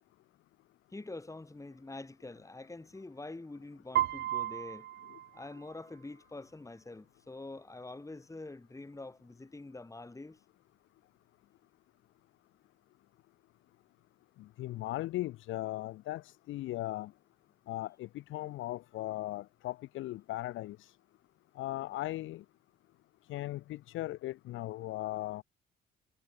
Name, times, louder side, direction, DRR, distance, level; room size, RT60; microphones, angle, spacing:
voice 1, 0.9-4.9 5.3-10.4, left 2 dB, 15° left, 4.0 m, -46 dB
Piano, 4.0-6.0, right 13 dB, 60° right, 0.4 m, -34 dB
voice 2, 14.4-17.1 17.7-21.0 21.6-22.4 23.3-25.4, left 16 dB, 80° left, 0.7 m, -38 dB
cardioid pair, 90°, 20 cm